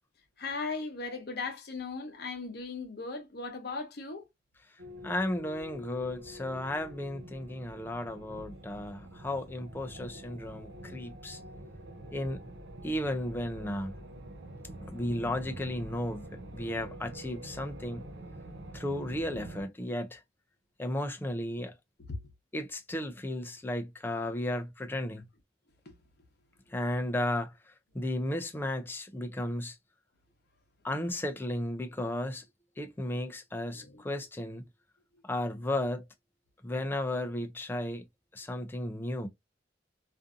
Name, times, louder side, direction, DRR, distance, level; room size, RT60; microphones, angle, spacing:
voice 1, 0.4-4.3 22.1-22.3 25.8-25.9 26.8-26.9 33.7-34.0 35.1-35.2, left 4 dB, 60° left, 0.8 m, -38 dB
sound 1, 4.8-19.6, right 1 dB, 65° right, 0.5 m, -46 dB
voice 2, 5.0-11.4 12.1-12.4 12.8-13.9 14.9-16.3 16.5-18.0 18.7-20.2 20.8-21.7 22.5-25.3 26.7-27.5 27.9-29.8 30.8-32.4 32.8-34.6 35.2-36.0 36.6-38.1 38.3-39.3, left 1 dB, 10° left, 0.4 m, -34 dB
2.5 x 2.5 x 2.4 m
head